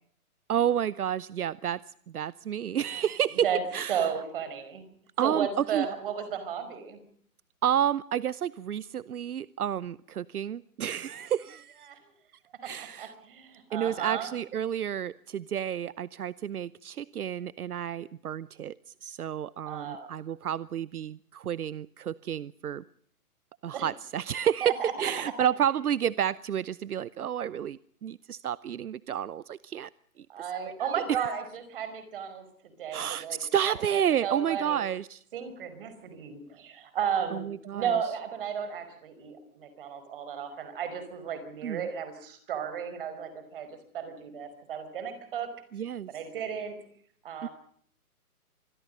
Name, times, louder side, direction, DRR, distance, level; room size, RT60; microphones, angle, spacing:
voice 1, 0.5-1.8 2.1-3.5 3.7-4.1 5.2-5.9 7.6-11.9 12.6-13.1 13.7-18.8 19.0-22.8 23.6-29.9 30.8-31.3 32.9-35.2 37.3-37.9 41.6-41.9 45.7-46.1 47.4-47.5, right 9 dB, 75° right, 19 dB, 0.8 m, -30 dB
voice 2, 3.9-4.8 5.2-7.0 11.9-12.0 12.6-14.3 19.7-20.1 23.7-23.9 24.6-24.9 30.3-34.8 35.3-43.7 43.9-45.5 46.1-46.7 47.2-47.5, right 8 dB, 35° right, 11 dB, 5.1 m, -34 dB
26.0 x 22.0 x 5.4 m, 0.62 s
hypercardioid pair, 165°, 45 cm